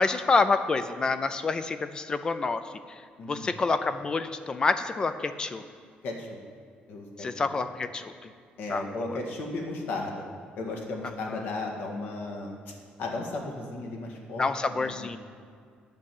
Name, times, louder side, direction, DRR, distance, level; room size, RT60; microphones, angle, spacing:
voice 1, 0.0-2.6 3.3-5.6 7.2-8.3 8.7-9.2 11.3-11.4 14.4-15.2, left 4 dB, 25° left, 11 dB, 0.4 m, -27 dB
voice 2, 3.2-3.5 6.0-6.3 6.9-7.5 8.6-10.2 10.6-12.7 13.0-15.2, left 2 dB, 75° left, 1 dB, 1.8 m, -35 dB
9.1 x 7.3 x 7.1 m, 2.1 s
cardioid pair, 160°, 3 cm